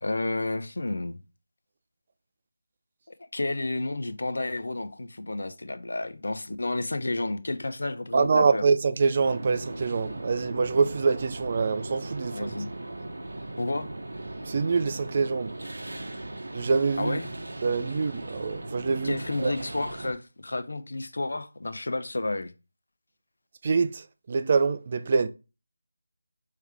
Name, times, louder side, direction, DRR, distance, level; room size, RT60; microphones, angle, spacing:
voice 1, 0.0-1.2 3.3-8.7 12.2-12.7 13.6-13.9 17.0-17.3 19.0-22.5, left 2 dB, 65° left, 0.4 m, -31 dB
voice 2, 8.1-12.5 14.5-15.5 16.5-17.2 17.6-19.5 23.6-24.0 24.3-25.3, right 5 dB, 35° right, 0.3 m, -25 dB
sound 1, 9.2-20.1, right 2 dB, 70° right, 0.7 m, -38 dB
3.2 x 3.1 x 3.3 m
figure-of-eight pair, 165°, 0 cm